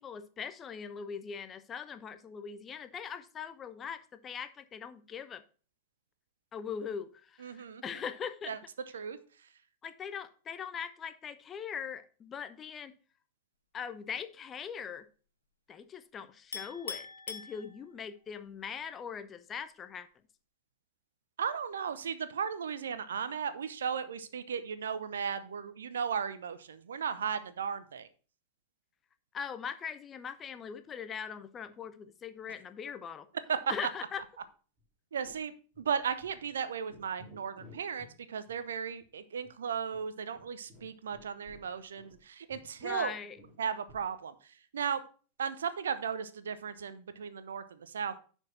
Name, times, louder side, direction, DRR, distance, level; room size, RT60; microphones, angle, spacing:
voice 1, 0.0-5.4 6.5-8.6 9.8-12.9 13.7-15.1 15.7-20.1 29.3-33.3 33.7-34.2 42.8-43.4, left 7 dB, 25° left, 0.6 m, -41 dB
voice 2, 7.4-7.8 8.5-8.6 8.9-9.2 21.4-28.1 33.5-33.6 35.1-43.1 43.6-45.0 45.4-48.2, right 7 dB, 65° right, 0.7 m, -36 dB
Chink clink, 16.5-18.2, left 5 dB, 75° left, 0.9 m, -42 dB
sound 1, 34.1-34.5 34.8-34.9 35.2-35.4 35.7-36.6 36.9-38.2 38.5-38.6 39.0-39.1 39.4-39.5 39.9-42.2 42.5-44.1, left 2 dB, 30° right, 2.4 m, -57 dB
10.5 x 4.6 x 4.4 m
figure-of-eight pair, 90°, 0 cm